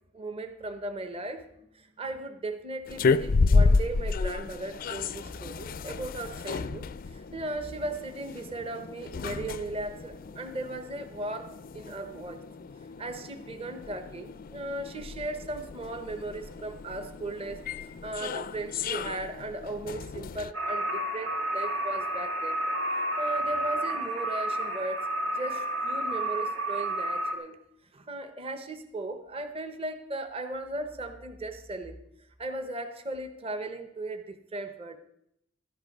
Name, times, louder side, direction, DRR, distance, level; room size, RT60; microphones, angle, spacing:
voice 1, 0.1-1.4 1.7-12.4 13.0-22.6 23.2-25.1 25.3-27.6 27.9-32.0 32.4-35.0, right 2 dB, 30° right, 7 dB, 0.9 m, -37 dB
sound 1, 2.9-20.5, left 4 dB, 45° left, 0.4 m, -31 dB
sound 2, 20.5-27.4, right 1 dB, 80° right, 2.8 m, -30 dB
13.5 x 11.5 x 5.3 m, 0.77 s
head